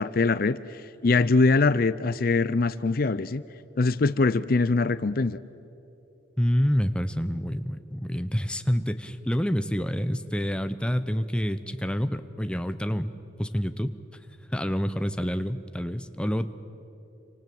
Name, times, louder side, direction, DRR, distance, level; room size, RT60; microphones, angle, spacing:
voice 1, 0.0-3.4 3.8-5.4, left 3 dB, 50° left, 16 dB, 0.5 m, -23 dB
voice 2, 6.4-13.1 13.4-14.0 14.5-16.5, equal, 5° left, 10 dB, 0.8 m, -27 dB
27.5 x 25.5 x 7.8 m, 2.9 s
head